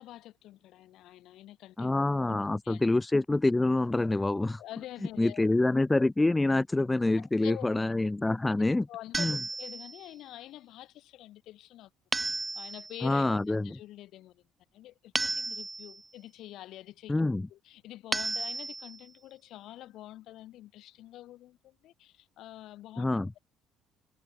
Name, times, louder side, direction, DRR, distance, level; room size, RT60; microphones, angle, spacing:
voice 1, 0.0-1.9 2.3-2.8 4.6-5.5 7.2-7.8 8.9-11.9 12.5-14.4 14.7-23.1, left 14 dB, 60° left, 6.7 m, -47 dB
voice 2, 1.8-4.6 5.2-8.9 9.2-9.4 13.0-13.8 17.1-17.5 23.0-23.3, left 2 dB, 10° left, 1.7 m, -26 dB
sound 1, 9.1-10.1 12.1-13.0 15.2-16.1 18.1-19.0, right 3 dB, 15° right, 1.1 m, -33 dB
open air
cardioid pair, 155°, 0 cm